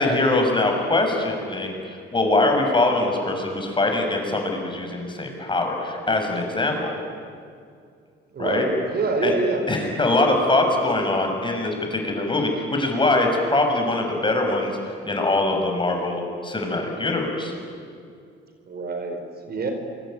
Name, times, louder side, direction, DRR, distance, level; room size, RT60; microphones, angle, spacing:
voice 1, 0.0-6.9 8.4-8.7 9.2-9.4 9.7-17.5, left 2 dB, 25° left, 2 dB, 6.8 m, -23 dB
voice 2, 8.3-9.6 18.7-19.7, right 3 dB, 55° right, 6 dB, 4.6 m, -26 dB
28.0 x 23.0 x 9.2 m, 2.3 s
cardioid pair, 90°, 20 cm